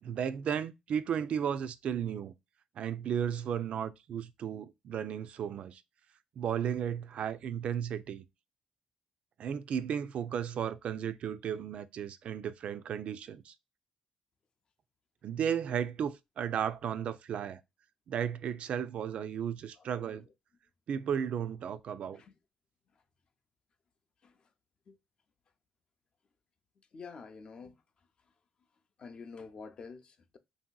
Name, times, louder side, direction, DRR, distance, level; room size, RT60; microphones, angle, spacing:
voice 1, 0.0-2.3 2.8-5.8 6.4-8.2 9.4-13.5 15.2-17.6 18.1-20.2 20.9-22.2, right 8 dB, 55° right, 0.3 m, -34 dB
voice 2, 19.8-20.3 22.1-22.3 24.2-24.5 24.9-25.0 26.9-27.8 29.0-30.4, left 5 dB, 40° left, 0.4 m, -48 dB
3.2 x 2.7 x 2.2 m
cardioid pair, 130°, 2 cm